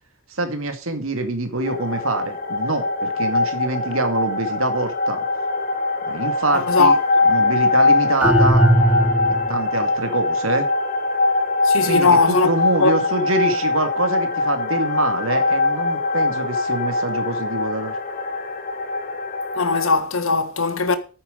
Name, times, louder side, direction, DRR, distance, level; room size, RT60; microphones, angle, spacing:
voice 1, 0.3-5.2 6.0-7.0 7.2-8.7 9.5-10.7 11.8-17.9, right 2 dB, 75° right, 2.4 m, -25 dB
sound 1, 1.6-19.9, left 3 dB, 45° left, 2.4 m, -22 dB
voice 2, 6.5-6.9 11.6-12.5 12.8-12.9 19.5-21.0, left 4 dB, 75° left, 1.6 m, -19 dB
sound 2, 8.2-9.7, right 1 dB, 5° right, 0.7 m, -17 dB
10.0 x 9.1 x 5.2 m
head